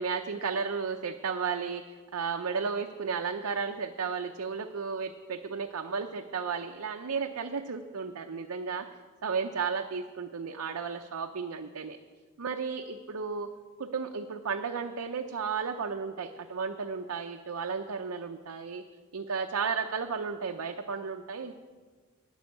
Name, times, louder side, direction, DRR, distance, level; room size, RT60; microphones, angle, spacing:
voice 1, 0.0-1.8 2.1-8.9 9.2-12.0 12.4-13.5 13.8-18.8 19.1-21.5, right 5 dB, 70° right, 4 dB, 0.6 m, -33 dB
12.5 x 6.2 x 9.5 m, 1.5 s
head